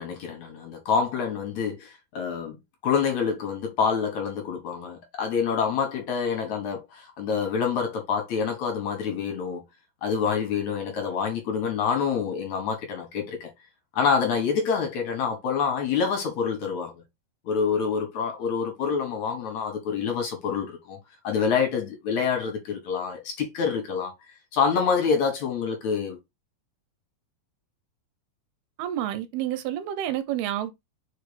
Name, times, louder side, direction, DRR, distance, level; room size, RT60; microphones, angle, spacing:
voice 1, 0.0-2.6 2.8-9.6 10.0-13.5 13.9-16.9 17.5-21.0 21.2-24.1 24.5-26.2, left 6 dB, 60° left, 2.2 m, -27 dB
voice 2, 28.8-30.7, right 12 dB, 85° right, 2.8 m, -29 dB
5.5 x 5.1 x 3.4 m
omnidirectional pair, 4.4 m